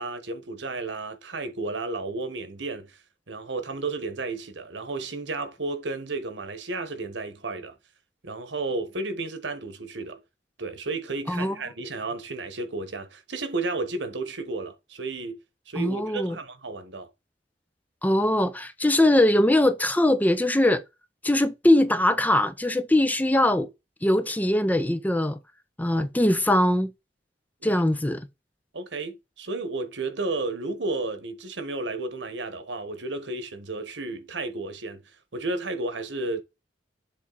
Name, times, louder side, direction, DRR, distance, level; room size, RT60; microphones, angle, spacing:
voice 1, 0.0-7.8 8.2-10.2 10.6-15.4 15.7-17.1 27.6-27.8 28.7-36.4, right 3 dB, 85° right, 1.3 m, -32 dB
voice 2, 15.8-16.4 18.0-20.8 21.2-23.7 24.0-25.4 25.8-26.9 27.6-28.2, left 1 dB, 10° left, 0.6 m, -21 dB
7.4 x 3.3 x 4.0 m
head